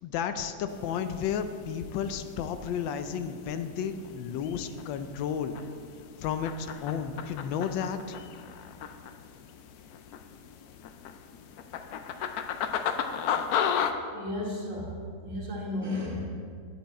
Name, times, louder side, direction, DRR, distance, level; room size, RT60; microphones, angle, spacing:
voice 1, 0.0-5.6 6.2-8.2, left 7 dB, 90° left, 9 dB, 1.4 m, -32 dB
sound 1, 0.7-13.9, left 8 dB, 70° left, 0.9 m, -36 dB
voice 2, 14.1-16.3, left 1 dB, 45° right, -3 dB, 2.0 m, -34 dB
9.2 x 8.7 x 4.2 m, 2.1 s
omnidirectional pair, 2.0 m